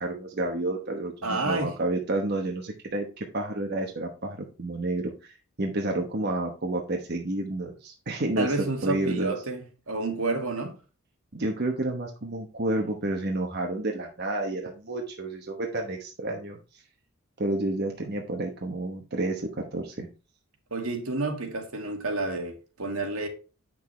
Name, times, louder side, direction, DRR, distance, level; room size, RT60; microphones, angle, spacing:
voice 1, 0.0-8.5 8.8-9.3 11.3-16.8 17.4-20.1, right 2 dB, 45° right, 1.1 m, -30 dB
voice 2, 1.2-1.7 8.4-10.7 20.7-23.3, right 2 dB, 75° right, 1.9 m, -30 dB
9.1 x 6.2 x 3.2 m
head